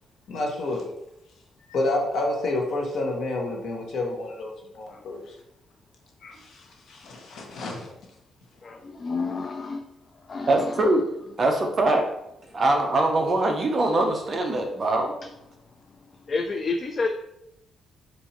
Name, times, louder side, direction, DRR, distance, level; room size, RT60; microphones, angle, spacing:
voice 1, 0.3-0.8 1.7-5.3 6.2-7.9, left 2 dB, 65° left, 0 dB, 1.1 m, -29 dB
voice 2, 8.6-9.8 10.3-10.8 16.3-17.1, left 4 dB, 35° left, 3 dB, 0.3 m, -29 dB
voice 3, 10.5-11.0 11.4-12.1 12.5-15.1, right 2 dB, 35° right, 3 dB, 0.7 m, -22 dB
4.3 x 2.6 x 4.3 m, 0.81 s
cardioid pair, 140°, 0 cm